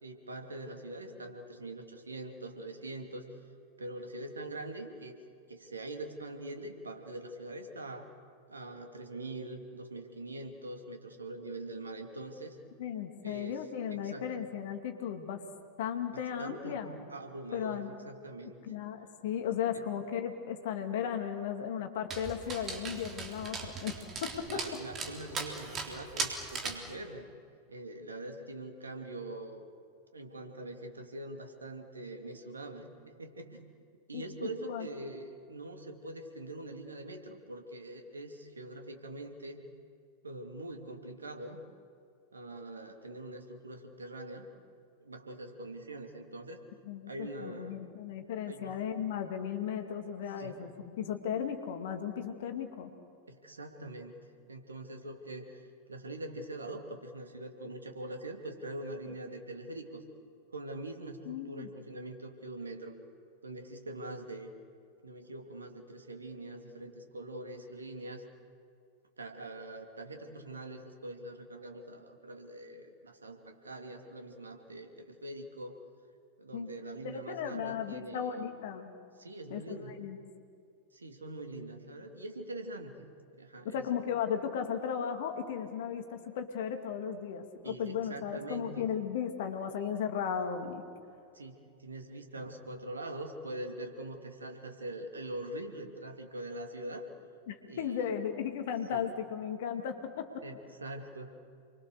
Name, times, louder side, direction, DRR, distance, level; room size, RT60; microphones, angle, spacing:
voice 1, 0.0-3.2 3.8-5.2 5.5-8.1 8.5-12.6 13.2-14.3 16.1-16.8 17.1-18.6 19.7-19.8 24.4-27.3 27.7-29.6 30.1-33.6 34.1-39.6 40.2-41.6 42.3-44.5 45.0-46.6 47.1-47.9 48.5-48.8 50.4-50.6 53.3-54.2 54.5-60.0 60.5-63.0 63.4-64.5 65.0-68.2 69.2-75.8 76.4-78.4 79.2-80.0 80.9-83.0 83.3-83.9 87.6-88.9 91.3-97.1 97.6-98.1 98.9-99.0 100.4-101.4, right 1 dB, 75° right, 4 dB, 2.8 m, -43 dB
voice 2, 12.8-15.4 15.8-17.0 17.5-17.9 18.7-24.0 24.2-24.6 34.1-34.2 34.7-34.9 46.8-50.7 51.0-52.9 61.3-61.7 76.5-76.7 77.0-78.9 79.5-80.2 83.6-90.8 97.5-100.4, left 8 dB, 55° left, 6 dB, 2.3 m, -36 dB
Dog, 22.1-26.9, right 4 dB, 25° right, 3.5 m, -39 dB
29.0 x 23.5 x 6.7 m, 2.3 s
figure-of-eight pair, 90°, 0 cm